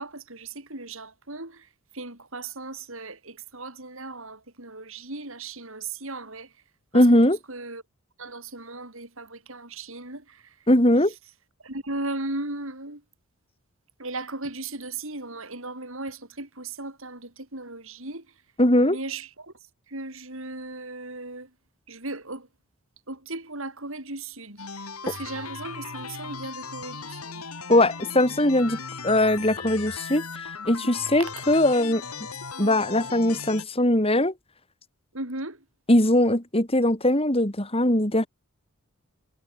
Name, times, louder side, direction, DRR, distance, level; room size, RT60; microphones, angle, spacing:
voice 1, 0.0-1.7 1.9-6.5 6.9-7.0 7.5-7.8 8.2-10.4 11.6-13.0 14.0-18.2 18.7-19.5 19.9-21.5 21.9-22.5 23.1-27.4 35.1-35.6, right 2 dB, 60° right, 5.2 m, -37 dB
voice 2, 6.9-7.4 10.7-11.1 18.6-19.0 27.7-30.2 30.7-32.0 32.6-34.3 35.9-38.3, left 1 dB, 25° left, 4.4 m, -20 dB
sound 1, 24.6-33.6, left 5 dB, 80° left, 6.0 m, -37 dB
head